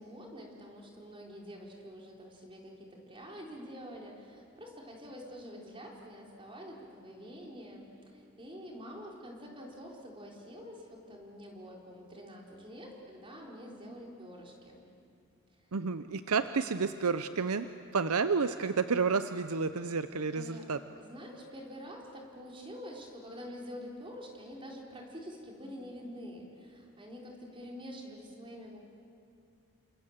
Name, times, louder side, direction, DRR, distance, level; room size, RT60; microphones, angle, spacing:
voice 1, 0.0-14.8 15.6-15.7 20.3-20.7 21.0-28.8, equal, 25° right, -1 dB, 4.2 m, -47 dB
voice 2, 15.7-20.8, right 5 dB, 85° right, 11 dB, 0.7 m, -30 dB
29.0 x 26.0 x 7.4 m, 2.6 s
head